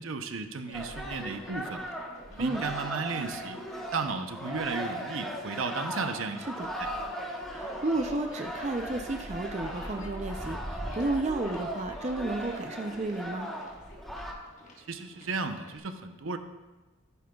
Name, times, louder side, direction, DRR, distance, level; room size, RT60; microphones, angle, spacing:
voice 1, 0.0-1.8 2.3-3.6 3.9-6.9 14.8-16.4, right 4 dB, 70° right, 7 dB, 0.7 m, -34 dB
Conversation, 0.5-15.8, left 1 dB, 35° left, 1.4 m, -51 dB
sound 1, 0.7-14.3, equal, ahead, 1.0 m, -38 dB
voice 2, 7.5-13.5, right 2 dB, 30° right, 5 dB, 0.5 m, -32 dB
14.0 x 10.0 x 2.3 m, 1.2 s
head